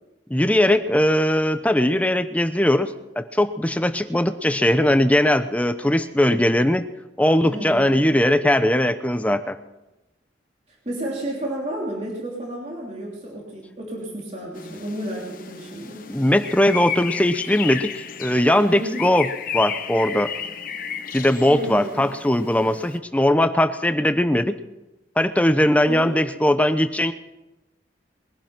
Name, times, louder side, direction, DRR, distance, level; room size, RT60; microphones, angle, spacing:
voice 1, 0.3-6.8 7.2-9.6 16.1-20.3 21.1-24.6 25.2-27.1, left 1 dB, 10° left, 9 dB, 0.8 m, -20 dB
voice 2, 7.4-8.0 10.7-16.0 18.7-19.1 21.5-22.0 25.7-26.2, right 1 dB, 35° right, -3 dB, 3.2 m, -32 dB
sound 1, 14.5-23.0, left 7 dB, 50° left, 1.1 m, -33 dB
21.5 x 11.0 x 6.0 m, 1.0 s
head